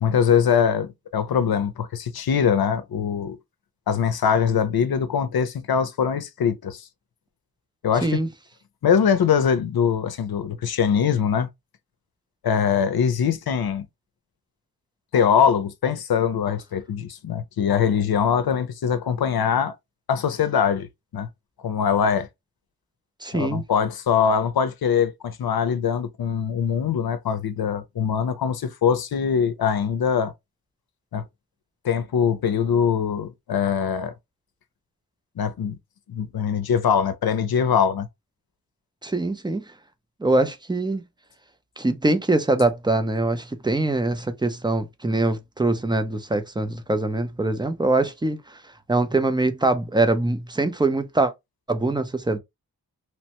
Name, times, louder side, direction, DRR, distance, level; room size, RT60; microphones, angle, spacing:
voice 1, 0.0-3.4 3.9-6.9 7.8-8.2 8.8-11.5 12.4-13.8 15.1-19.7 20.1-20.9 21.1-21.3 21.6-22.3 23.3-30.3 31.1-31.2 31.8-34.1 35.4-35.8 36.1-38.1, left 7 dB, 75° left, 0.6 m, -22 dB
voice 2, 23.2-23.6 39.0-39.6 40.2-41.0 41.8-48.4 48.9-51.3 51.7-52.4, right 2 dB, 15° right, 0.4 m, -23 dB
3.0 x 2.1 x 2.8 m
wide cardioid pair, 115°, 37 cm